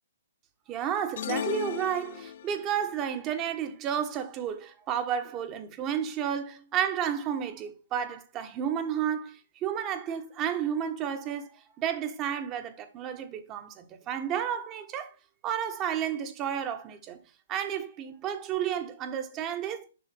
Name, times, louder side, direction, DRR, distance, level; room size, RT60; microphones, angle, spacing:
voice 1, 0.7-15.1 15.4-17.2 17.5-19.9, right 9 dB, 25° right, 1.2 m, -32 dB
sound 1, 1.2-2.7, left 10 dB, 50° left, 0.3 m, -35 dB
7.2 x 5.5 x 3.5 m
figure-of-eight pair, 125°, 0 cm